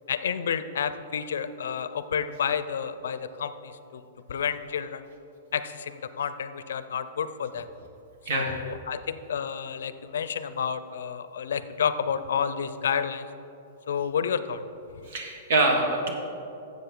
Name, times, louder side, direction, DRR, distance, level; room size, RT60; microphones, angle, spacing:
voice 1, 0.1-4.0 4.3-5.0 5.5-7.7 8.3-13.3 13.9-14.6, left 7 dB, 85° left, 12 dB, 0.5 m, -30 dB
voice 2, 15.1-16.1, right 2 dB, 55° right, 2 dB, 1.6 m, -24 dB
12.5 x 7.6 x 3.8 m, 3.0 s
hypercardioid pair, 165°, 0 cm